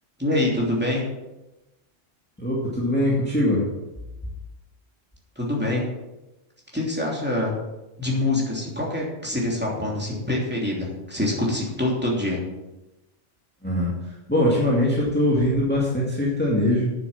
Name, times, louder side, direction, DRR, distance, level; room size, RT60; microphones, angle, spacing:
voice 1, 0.2-1.0 5.4-5.8 6.7-7.6 8.0-12.4, left 1 dB, 10° right, -4 dB, 3.0 m, -25 dB
voice 2, 2.4-3.7 13.6-13.9 14.3-16.9, left 1 dB, 10° left, -5 dB, 2.2 m, -22 dB
9.2 x 7.7 x 7.3 m, 1.0 s
omnidirectional pair, 1.3 m